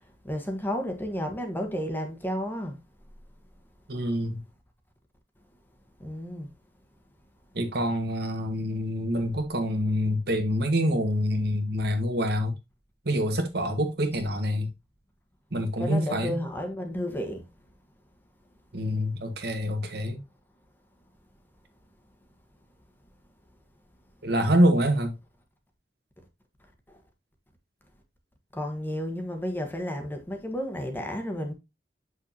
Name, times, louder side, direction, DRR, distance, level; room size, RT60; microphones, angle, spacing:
voice 1, 0.2-2.8 6.0-6.5 15.8-17.4 28.5-31.5, equal, 10° left, 1.3 m, -32 dB
voice 2, 3.9-4.4 7.5-12.5 13.0-14.7 15.5-16.4 18.7-20.2 24.2-25.1, equal, 65° right, 1.6 m, -26 dB
7.3 x 6.4 x 2.8 m
head